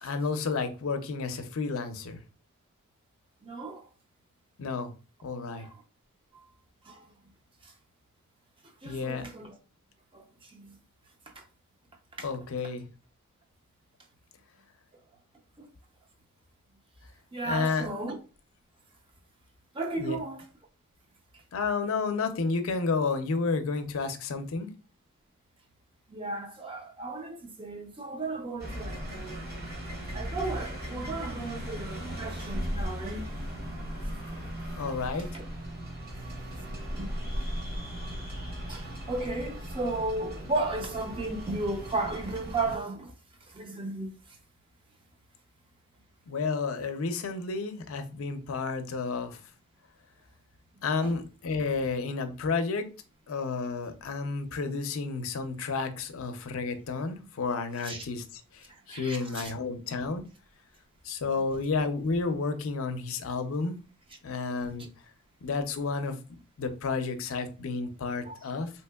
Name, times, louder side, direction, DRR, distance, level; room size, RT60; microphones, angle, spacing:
voice 1, 0.0-2.2 4.6-4.9 5.2-5.7 8.8-9.2 12.2-12.9 17.4-17.9 20.0-20.2 21.5-24.7 34.7-35.3 46.3-49.4 50.8-52.9 53.3-60.3 61.0-63.8 64.2-64.9 65.4-68.7, left 4 dB, 80° left, 0.5 m, -31 dB
voice 2, 3.4-3.8 5.6-5.8 6.8-7.0 7.6-7.7 8.8-9.6 10.1-10.2 10.5-10.8 11.4-11.5 12.2-12.3 15.6-15.7 17.3-18.2 19.7-20.4 26.1-29.4 30.1-33.3 34.3-34.4 35.3-35.4 37.0-37.1 38.7-43.1 43.5-44.1 51.0-51.1 57.8-58.0 58.9-59.5 64.8-64.9 68.2-68.3, right 2 dB, 25° right, 0.5 m, -34 dB
sound 1, 28.6-42.8, equal, 50° right, 1.2 m, -37 dB
3.5 x 2.8 x 2.2 m
head